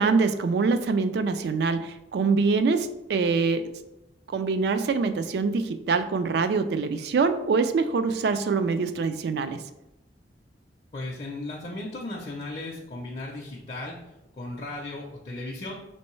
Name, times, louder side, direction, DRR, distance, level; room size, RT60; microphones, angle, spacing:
voice 1, 0.0-3.8 4.3-9.6, right 4 dB, 60° right, 10 dB, 0.3 m, -24 dB
voice 2, 10.9-14.0 14.3-15.7, left 2 dB, 35° left, -3 dB, 0.5 m, -36 dB
4.4 x 3.0 x 3.1 m, 0.92 s
head